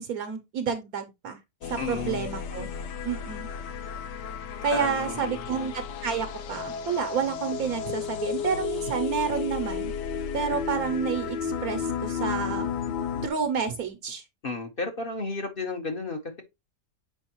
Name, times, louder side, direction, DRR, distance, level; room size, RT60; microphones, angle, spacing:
voice 1, 0.0-1.4 1.7-2.7 3.0-3.5 4.6-9.9 10.3-12.7 13.2-14.2, right 6 dB, 65° right, 1.1 m, -30 dB
sound 1, 1.6-13.3, left 7 dB, 85° left, 1.4 m, -33 dB
voice 2, 1.8-2.2 4.7-5.5 14.4-16.4, left 3 dB, 35° left, 1.2 m, -33 dB
7.0 x 4.8 x 2.9 m
omnidirectional pair, 1.8 m